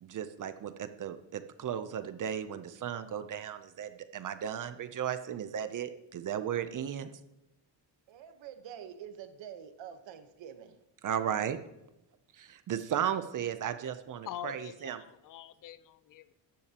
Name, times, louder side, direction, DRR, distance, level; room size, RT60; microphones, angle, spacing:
voice 1, 0.0-7.1 11.0-11.6 12.3-15.0, right 9 dB, 45° right, 10 dB, 0.6 m, -35 dB
voice 2, 8.1-10.8, right 9 dB, 70° right, 8 dB, 1.2 m, -46 dB
voice 3, 14.3-16.3, left 11 dB, 45° left, 14 dB, 0.5 m, -44 dB
13.5 x 10.5 x 2.9 m, 0.88 s
cardioid pair, 165°, 46 cm